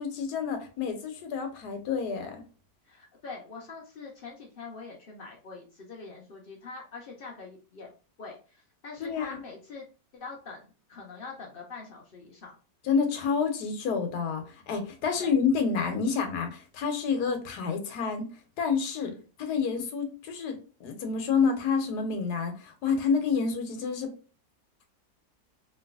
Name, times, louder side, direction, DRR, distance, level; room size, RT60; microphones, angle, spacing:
voice 1, 0.0-2.4 9.0-9.4 12.8-18.3 18.6-19.1 19.4-24.1, left 5 dB, 70° left, 5 dB, 1.2 m, -28 dB
voice 2, 2.8-7.9 8.2-9.9 10.1-12.5 15.2-15.3 19.0-19.2, left 4 dB, 85° left, -1 dB, 0.4 m, -44 dB
3.2 x 2.9 x 2.3 m, 0.36 s
omnidirectional pair, 1.9 m